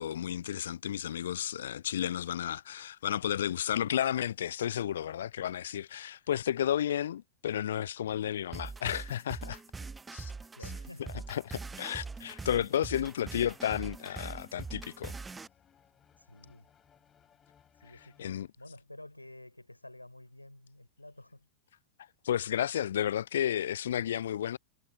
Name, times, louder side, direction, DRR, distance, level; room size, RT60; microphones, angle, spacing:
voice 1, 0.0-9.6 10.1-10.3 11.3-15.1 18.2-18.5 22.2-24.6, left 10 dB, 60° left, 0.4 m, -32 dB
sound 1, 8.5-15.5, right 4 dB, 10° right, 1.1 m, -42 dB
voice 2, 10.3-11.2 11.7-11.8 16.2-16.7 17.8-21.5, left 1 dB, 85° left, 4.8 m, -51 dB
sound 2, 11.1-18.3, left 8 dB, 25° left, 6.3 m, -64 dB
figure-of-eight pair, 90°, 0 cm